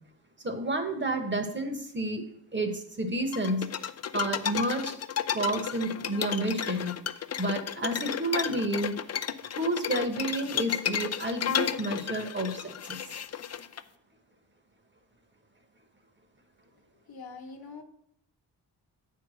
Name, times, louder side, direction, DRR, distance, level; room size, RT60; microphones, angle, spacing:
voice 1, 0.4-2.3 2.5-3.7 4.1-5.0 5.3-6.9 7.4-9.0 9.6-13.0, right 1 dB, 25° right, 6 dB, 1.2 m, -30 dB
sound 1, 3.3-13.8, left 8 dB, 40° left, 0.4 m, -33 dB
voice 2, 17.1-17.8, left 4 dB, 55° left, 6 dB, 1.2 m, -43 dB
8.4 x 4.7 x 6.2 m, 0.72 s
wide cardioid pair, 105°, 43 cm